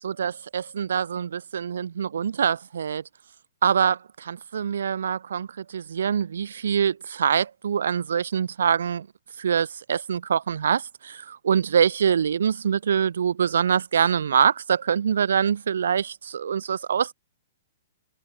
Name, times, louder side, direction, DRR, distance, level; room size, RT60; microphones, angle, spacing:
voice 1, 0.0-3.0 3.6-9.1 9.4-17.1, right 7 dB, 75° right, 0.8 m, -24 dB
hypercardioid pair, 125°, 0 cm